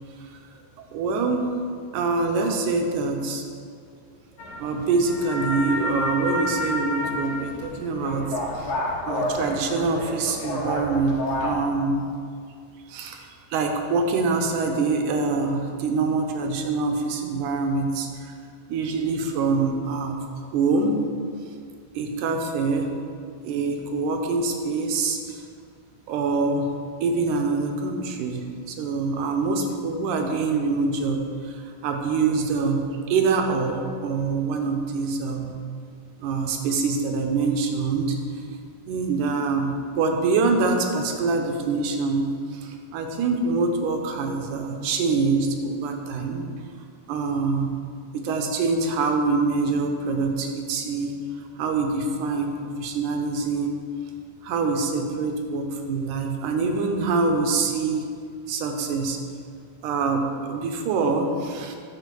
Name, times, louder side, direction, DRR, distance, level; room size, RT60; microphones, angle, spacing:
voice 1, 0.8-1.4 1.9-3.4 4.6-8.3 8.6-8.7 9.1-11.9 12.9-18.3 18.7-20.2 20.5-21.0 21.9-22.9 23.4-25.4 26.1-26.7 27.0-35.6 36.2-38.2 38.9-46.5 47.1-47.7 48.1-51.1 51.6-53.8 54.4-58.1 58.5-59.2 59.8-61.8, right 4 dB, 80° right, 4 dB, 2.3 m, -25 dB
sound 1, 4.4-11.5, left 1 dB, 75° left, 2.7 m, -30 dB
10.0 x 4.2 x 6.8 m, 2.2 s
omnidirectional pair, 3.6 m